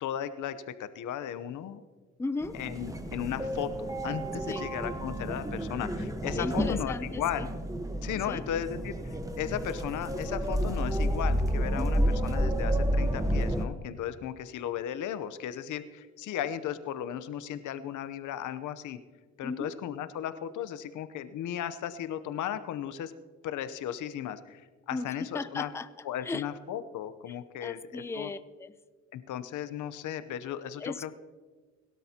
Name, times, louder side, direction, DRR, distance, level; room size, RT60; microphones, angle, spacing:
voice 1, 0.0-1.8 2.5-7.5 8.0-19.0 19.4-23.1 23.4-25.7 26.0-28.3 29.1-31.1, left 10 dB, 80° left, 12 dB, 0.9 m, -36 dB
voice 2, 2.2-2.6 4.5-4.6 6.4-7.5 8.3-8.4 11.8-12.1 19.4-19.7 24.9-25.9 26.2-26.4 27.6-28.7 30.8-31.1, left 3 dB, 10° left, 13 dB, 0.5 m, -36 dB
sound 1, 2.4-13.6, equal, 10° right, 1.2 m, -30 dB
21.0 x 12.5 x 2.9 m, 1.4 s
cardioid pair, 90°, 30 cm